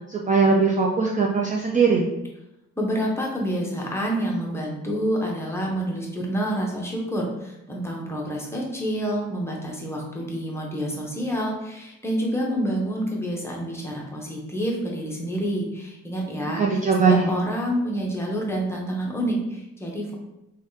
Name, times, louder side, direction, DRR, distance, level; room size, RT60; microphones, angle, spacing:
voice 1, 0.1-2.0 16.6-17.3, right 4 dB, 25° right, -2 dB, 0.3 m, -20 dB
voice 2, 2.8-16.6 17.0-20.2, equal, 10° left, -2 dB, 0.8 m, -28 dB
3.3 x 2.3 x 2.7 m, 0.90 s
cardioid pair, 90°, 30 cm